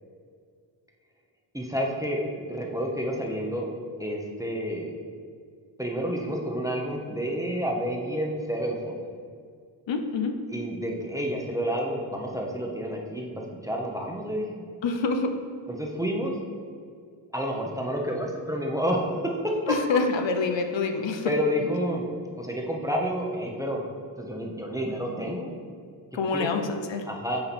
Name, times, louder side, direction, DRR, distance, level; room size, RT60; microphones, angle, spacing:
voice 1, 1.5-3.7 4.0-4.9 5.8-9.0 10.5-13.3 13.6-14.7 15.8-16.3 17.3-19.5 21.2-22.1 22.4-23.8 24.2-25.5 26.3-26.6 27.1-27.4, equal, 5° right, -1 dB, 0.6 m, -29 dB
voice 2, 9.9-10.3 14.8-15.3 19.7-21.3 21.6-21.7 26.1-27.0, left 4 dB, 70° left, 5 dB, 0.6 m, -26 dB
8.7 x 3.0 x 4.1 m, 2.1 s
wide cardioid pair, 125°, 47 cm